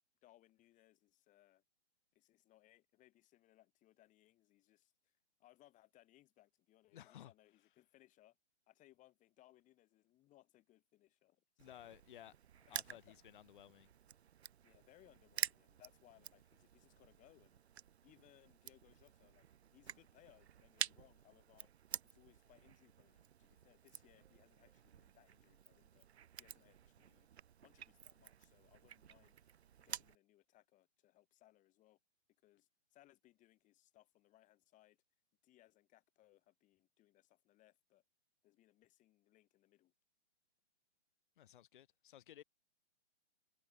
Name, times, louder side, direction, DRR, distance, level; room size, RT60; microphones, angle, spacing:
voice 1, 0.2-1.6 2.1-5.1 5.4-8.4 8.7-12.0 12.7-13.2 14.6-17.6 18.0-19.5 19.7-21.7 22.0-26.1 26.4-27.3 27.6-29.4 29.8-32.0 32.4-35.0 35.4-38.0 38.4-39.9, left 15 dB, 20° left, 6.9 m, -68 dB
voice 2, 6.9-7.3 11.6-13.9 41.4-42.4, left 12 dB, 45° left, 0.8 m, -57 dB
Crushing, 11.6-30.2, right 9 dB, 65° right, 0.8 m, -50 dB
figure-of-eight pair, 130°, 35 cm